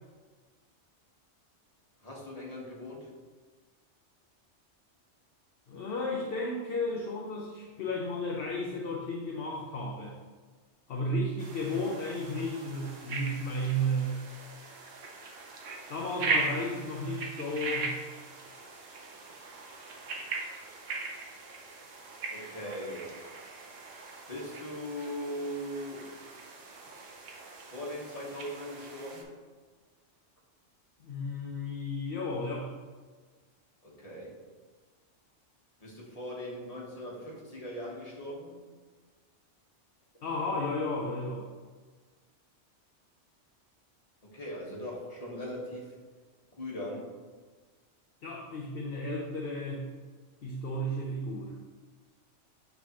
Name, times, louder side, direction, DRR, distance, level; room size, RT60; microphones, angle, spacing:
voice 1, 2.0-3.1 22.3-23.2 24.3-26.1 27.7-29.3 33.8-34.4 35.8-38.5 44.2-45.9 46.6-47.1, equal, 30° left, -5 dB, 1.5 m, -40 dB
voice 2, 5.7-10.2 10.9-14.2 15.9-18.0 31.0-32.7 40.2-41.4 48.2-49.9 50.4-51.5, left 1 dB, 55° left, -2 dB, 0.8 m, -33 dB
sound 1, 11.4-29.2, right 3 dB, 90° right, 1.2 m, -39 dB
8.3 x 4.0 x 3.0 m, 1.4 s
omnidirectional pair, 1.2 m